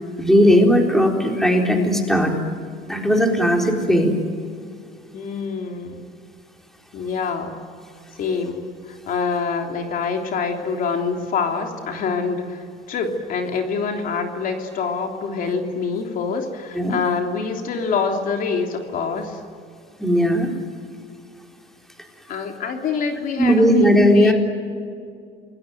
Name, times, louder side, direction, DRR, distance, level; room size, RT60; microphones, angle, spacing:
voice 1, 0.2-2.3 2.9-4.2 16.8-17.0 20.0-20.5 23.4-24.3, equal, ahead, 2 dB, 3.9 m, -17 dB
voice 2, 5.1-6.1 6.9-7.6 8.2-8.6 9.1-19.4 22.3-24.3, left 5 dB, 50° left, 3 dB, 3.2 m, -26 dB
29.0 x 21.0 x 9.3 m, 2.3 s
cardioid pair, 140°, 18 cm